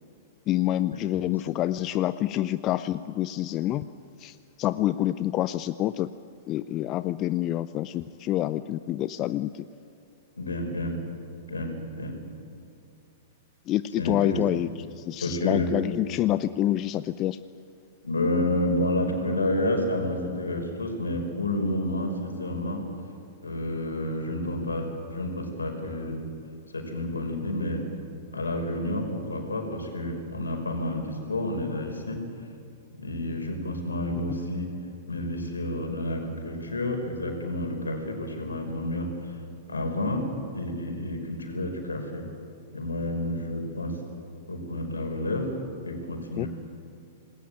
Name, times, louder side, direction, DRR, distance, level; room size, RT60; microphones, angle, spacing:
voice 1, 0.5-3.9 4.2-6.1 6.5-9.6 13.7-14.7 15.0-17.4 46.4-46.5, left 13 dB, 30° left, 14 dB, 0.6 m, -27 dB
voice 2, 10.4-11.0 11.5-12.2 14.0-14.4 15.2-15.7 18.0-22.9 23.4-26.2 26.7-27.9 28.3-32.2 32.9-34.7 35.1-39.4 39.7-40.3 40.5-42.3 42.7-44.0 44.5-45.5 45.8-46.5, left 1 dB, 75° left, 4 dB, 5.3 m, -30 dB
27.0 x 20.0 x 8.8 m, 2.5 s
figure-of-eight pair, 105°, 0 cm